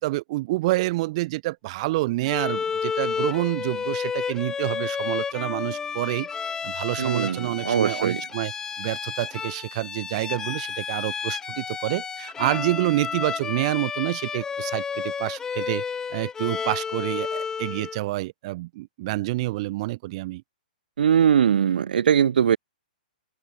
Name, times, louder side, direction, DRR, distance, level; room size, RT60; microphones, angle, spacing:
voice 1, 0.0-6.3 6.6-8.5 8.8-15.8 16.1-20.4, right 19 dB, 40° right, 2.9 m, -28 dB
Bowed string instrument, 2.3-18.0, left 6 dB, 10° left, 6.4 m, -31 dB
voice 2, 7.0-8.2 21.0-22.6, right 8 dB, 75° right, 1.7 m, -21 dB
open air
hypercardioid pair, 150°, 5 cm